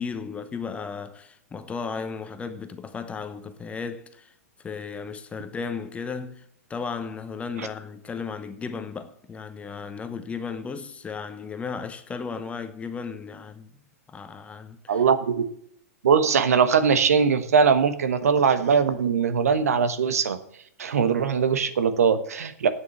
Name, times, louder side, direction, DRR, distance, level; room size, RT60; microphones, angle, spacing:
voice 1, 0.0-4.3 4.6-6.4 6.7-13.7 14.1-15.0, left 5 dB, 15° left, 1.0 m, -35 dB
voice 2, 14.9-15.4 16.0-20.4 20.8-22.7, right 6 dB, 70° right, 1.2 m, -21 dB
8.7 x 7.9 x 7.0 m
hypercardioid pair, 115°, 8 cm